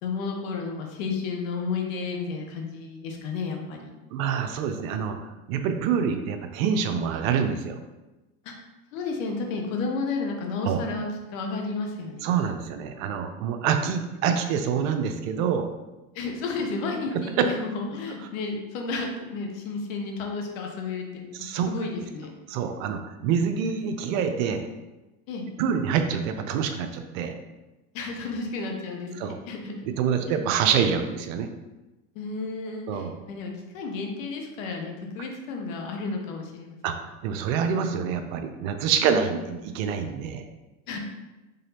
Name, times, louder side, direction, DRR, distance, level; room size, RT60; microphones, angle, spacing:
voice 1, 0.0-3.8 8.9-12.3 16.1-22.3 25.3-25.4 27.9-29.7 32.1-36.8 40.9-41.0, left 4 dB, 70° left, 2 dB, 0.9 m, -32 dB
voice 2, 4.1-5.2 5.5-7.8 10.7-10.8 12.2-15.7 18.2-18.3 21.3-21.7 22.5-24.7 25.6-27.4 29.1-29.4 29.8-31.5 32.9-33.2 36.8-36.9 37.2-40.4, right 7 dB, 70° right, 7 dB, 0.6 m, -26 dB
4.0 x 3.3 x 2.8 m, 1.1 s
hypercardioid pair, 95°, 41 cm